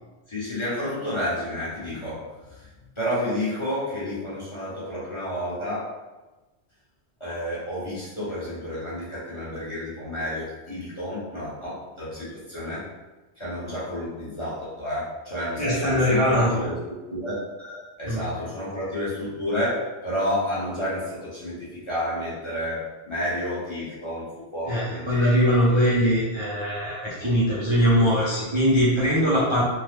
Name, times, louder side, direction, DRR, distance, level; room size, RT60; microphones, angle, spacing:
voice 1, 0.3-2.7 3.0-5.9 7.2-12.8 13.4-16.7 17.1-17.4 18.0-24.2 24.5-25.6 27.2-27.3, left 1 dB, 30° left, -10 dB, 0.9 m, -30 dB
voice 2, 15.6-16.7 17.6-17.8 18.1-18.3 24.7-29.6, equal, 35° right, -9 dB, 0.5 m, -21 dB
2.9 x 2.2 x 3.3 m, 1.1 s
omnidirectional pair, 1.1 m